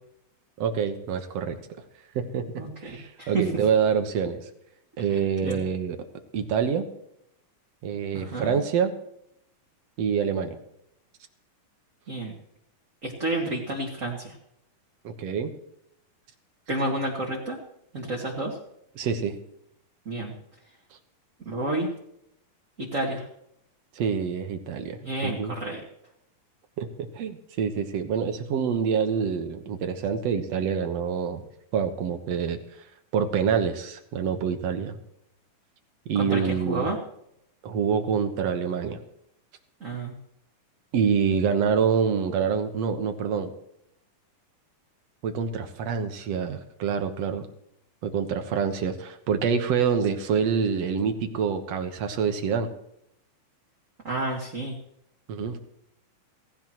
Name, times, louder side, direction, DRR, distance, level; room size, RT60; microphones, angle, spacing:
voice 1, 0.6-1.6 2.2-2.5 2.8-4.5 5.0-6.0 6.3-6.9 7.8-8.9 10.0-10.6 15.0-15.5 19.0-19.3 24.0-25.5 26.8-31.4 31.7-32.6 33.1-35.0 36.1-36.9 37.6-39.0 40.9-43.5 45.2-47.5 48.0-52.7 55.3-55.6, right 6 dB, 60° right, 7 dB, 1.9 m, -26 dB
voice 2, 2.6-3.5 5.1-5.6 8.1-8.6 12.1-12.3 13.0-14.3 16.7-17.6 17.9-18.6 20.1-20.3 21.5-21.9 22.8-23.3 25.0-25.8 36.1-37.0 39.8-40.2 54.0-54.7, right 2 dB, 30° right, -2 dB, 1.8 m, -30 dB
18.0 x 16.5 x 3.1 m, 0.75 s
omnidirectional pair, 4.2 m